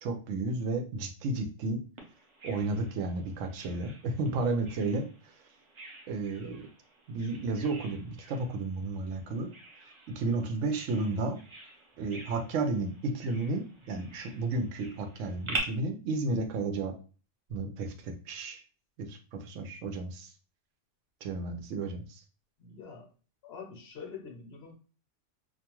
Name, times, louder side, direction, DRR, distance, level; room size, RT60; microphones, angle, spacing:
voice 1, 0.0-1.8 2.4-5.1 6.1-6.7 7.1-9.5 10.1-11.4 12.0-16.9 17.5-18.6 19.0-20.3 21.2-22.2, right 3 dB, 90° right, 5 dB, 0.9 m, -32 dB
Bird vocalization bird call bird song, 2.0-15.6, right 2 dB, 40° right, 0.4 m, -46 dB
voice 2, 22.6-23.1 23.4-24.7, left 6 dB, 60° left, 2 dB, 0.9 m, -45 dB
2.5 x 2.2 x 2.9 m, 0.37 s
omnidirectional pair, 1.3 m